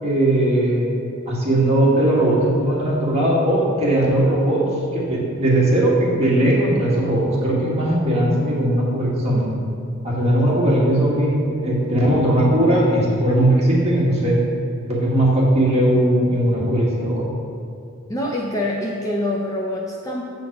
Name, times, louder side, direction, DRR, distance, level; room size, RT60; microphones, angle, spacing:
voice 1, 0.0-0.9 1.3-4.6 4.9-9.4 10.0-14.4 14.9-17.2, right 1 dB, 30° right, -5 dB, 1.6 m, -18 dB
voice 2, 18.1-20.2, left 1 dB, 15° left, -2 dB, 0.5 m, -25 dB
7.4 x 3.9 x 5.8 m, 2.4 s
head